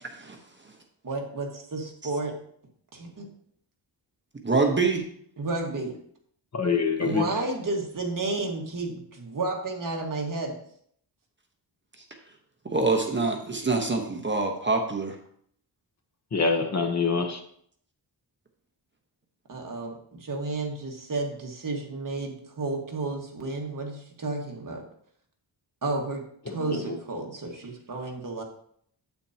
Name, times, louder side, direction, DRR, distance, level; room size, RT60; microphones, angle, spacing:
voice 1, 1.0-2.3 2.9-3.3 5.4-6.0 7.0-10.5 19.5-24.8 25.8-28.4, right 3 dB, 45° right, 0 dB, 1.7 m, -32 dB
voice 2, 4.4-5.0 7.0-7.2 12.6-15.2, right 3 dB, 25° right, 2 dB, 1.1 m, -25 dB
voice 3, 6.5-7.2 16.3-17.4 26.7-27.0, left 5 dB, 40° left, 5 dB, 1.0 m, -25 dB
8.9 x 8.4 x 2.8 m, 0.65 s
wide cardioid pair, 135°, 43 cm